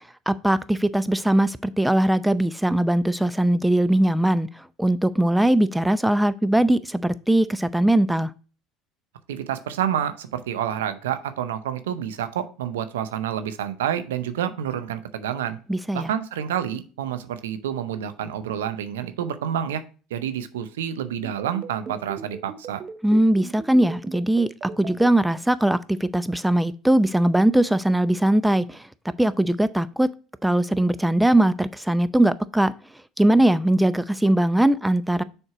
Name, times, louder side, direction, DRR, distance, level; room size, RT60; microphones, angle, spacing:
voice 1, 0.3-4.5 4.8-8.3 15.7-16.1 23.0-24.5 24.8-28.9 29.2-30.1 30.4-32.7 33.2-35.2, right 1 dB, 5° right, 0.5 m, -20 dB
voice 2, 9.3-15.6 15.9-19.8 20.1-22.8, right 9 dB, 85° right, 0.6 m, -28 dB
sound 1, 21.2-25.1, right 6 dB, 40° right, 0.7 m, -37 dB
6.6 x 4.4 x 4.8 m
hypercardioid pair, 75°, 0 cm